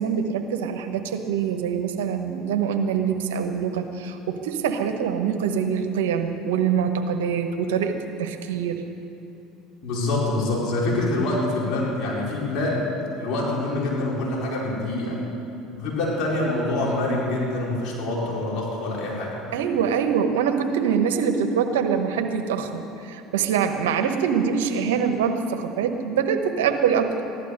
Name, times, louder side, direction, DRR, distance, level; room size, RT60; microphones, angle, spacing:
voice 1, 0.0-8.8 19.5-27.2, right 7 dB, 80° right, 6 dB, 1.1 m, -24 dB
voice 2, 9.8-12.9 13.2-15.2 15.7-19.4, left 2 dB, 55° left, -5 dB, 4.7 m, -25 dB
15.5 x 12.0 x 6.6 m, 2.8 s
hypercardioid pair, 75°, 0 cm